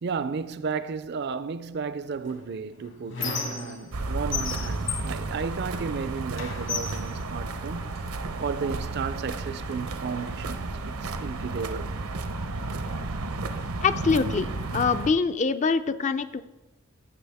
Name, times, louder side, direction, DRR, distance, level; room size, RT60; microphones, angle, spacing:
voice 1, 0.0-8.0 8.4-11.9, right 5 dB, 50° right, 0.4 m, -33 dB
Squeak, 2.2-4.0 4.3-6.0 6.4-8.1 8.8-9.0 9.3-10.3, left 4 dB, 55° left, 1.3 m, -35 dB
sound 1, 3.9-15.1, right 3 dB, 80° right, 0.7 m, -32 dB
voice 2, 13.8-14.5 14.7-16.4, left 5 dB, 35° left, 0.3 m, -24 dB
16.0 x 7.0 x 3.5 m
head